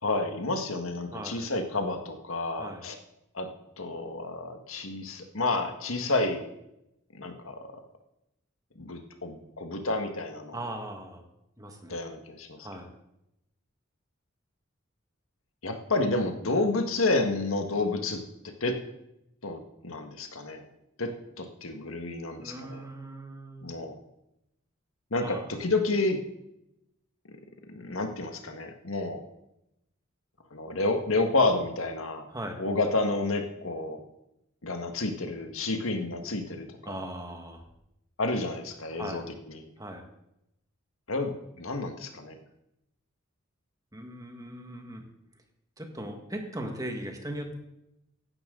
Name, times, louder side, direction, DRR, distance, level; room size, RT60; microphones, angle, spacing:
voice 1, 0.0-2.9 3.3-3.5 3.8-6.4 7.1-7.7 8.8-10.5 11.9-12.7 15.6-18.8 19.4-20.6 21.0-22.8 23.6-24.0 25.1-26.2 27.7-29.2 30.5-32.3 32.6-34.0 34.6-37.0 38.2-39.6 41.1-42.4, left 2 dB, 90° left, 5 dB, 1.7 m, -30 dB
voice 2, 1.1-1.5 2.6-2.9 10.5-11.2 11.6-12.0 12.6-12.9 22.4-23.8 25.2-25.5 32.3-32.6 36.8-37.6 38.9-39.3 39.8-40.0 43.9-45.1 45.8-47.6, right 1 dB, 15° right, 4 dB, 1.7 m, -39 dB
15.5 x 12.0 x 3.9 m, 0.84 s
head